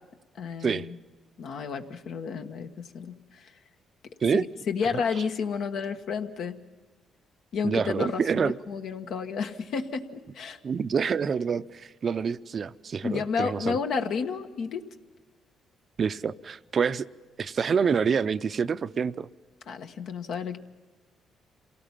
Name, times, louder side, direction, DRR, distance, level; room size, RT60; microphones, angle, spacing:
voice 1, 0.3-1.0 1.4-3.5 4.3-6.6 7.5-10.6 13.0-14.8 19.7-20.6, left 6 dB, 75° left, 6 dB, 1.3 m, -31 dB
voice 2, 7.6-8.6 10.6-13.8 16.0-17.1 17.4-19.3, right 6 dB, 45° right, 15 dB, 0.6 m, -27 dB
27.0 x 18.0 x 5.8 m, 1.3 s
cardioid pair, 90°, 0 cm